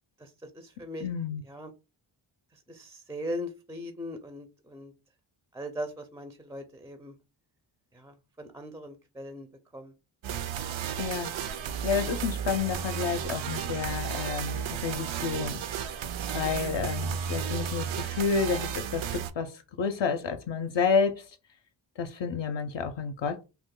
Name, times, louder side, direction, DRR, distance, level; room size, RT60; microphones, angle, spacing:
voice 1, 0.2-1.1 1.4-1.7 2.5-4.9 5.5-7.1 7.9-9.5 9.7-9.9, equal, 5° right, 0.4 m, -39 dB
voice 2, 1.0-1.4 11.0-15.6 16.3-21.4 22.0-23.4, left 5 dB, 60° left, 0.5 m, -30 dB
sound 1, 10.2-19.3, right 8 dB, 70° right, 0.5 m, -33 dB
2.9 x 2.1 x 3.6 m
cardioid pair, 65°, 49 cm